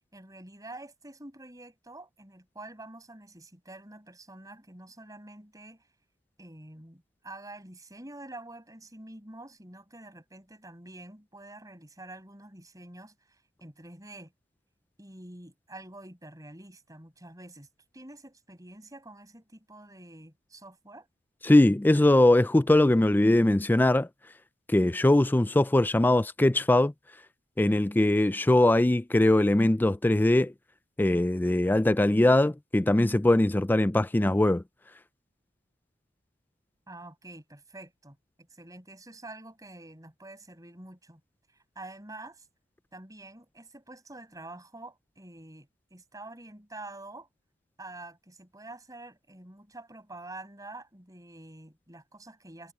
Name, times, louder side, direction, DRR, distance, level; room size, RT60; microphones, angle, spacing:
voice 1, 0.1-5.9 6.4-14.3 15.0-17.7 17.9-21.1 36.9-41.2 41.5-42.5 42.9-47.3 47.8-52.7, right 2 dB, 20° right, 7.2 m, -47 dB
voice 2, 21.4-24.1 24.7-26.9 27.6-30.5 31.0-34.6, left 1 dB, 10° left, 0.4 m, -21 dB
head